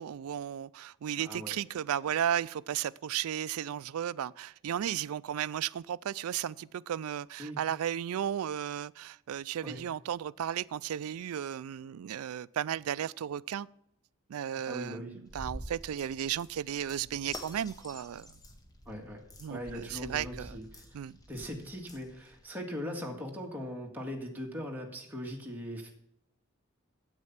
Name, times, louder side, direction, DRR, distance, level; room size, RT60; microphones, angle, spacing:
voice 1, 0.0-13.7 14.3-18.3 19.4-20.6 20.9-21.2, right 9 dB, 80° right, 0.3 m, -34 dB
voice 2, 1.2-1.6 7.4-7.6 9.6-9.8 14.7-15.2 18.9-19.2 19.5-21.0 21.3-26.0, equal, 10° right, 1.8 m, -40 dB
sound 1, 15.3-22.5, equal, 15° left, 1.1 m, -48 dB
9.6 x 8.2 x 5.9 m
head